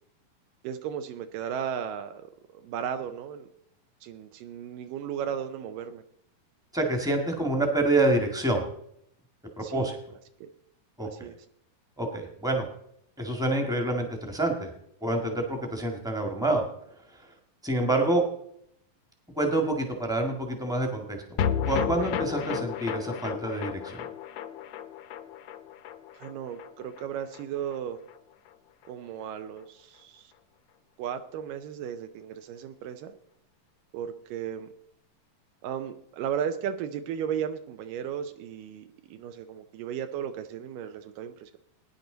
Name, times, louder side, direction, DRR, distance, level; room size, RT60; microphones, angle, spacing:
voice 1, 0.6-2.3 2.5-3.5 4.0-6.0 9.6-9.9 10.4-10.5 11.0-11.4 26.1-28.0 28.9-30.3 31.0-33.1 33.9-34.7 35.6-41.6, right 8 dB, 80° right, 8 dB, 2.4 m, -35 dB
voice 2, 6.7-8.6 9.6-10.0 11.0-11.3 12.0-12.7 13.2-14.7 15.0-16.6 17.1-17.3 17.6-18.2 19.3-21.2 21.7-24.0, right 2 dB, ahead, 3 dB, 0.9 m, -27 dB
sound 1, 21.4-27.8 28.1-28.2 28.5-28.6, left 8 dB, 70° left, 1.7 m, -33 dB
20.0 x 10.5 x 4.0 m, 0.74 s
omnidirectional pair, 3.9 m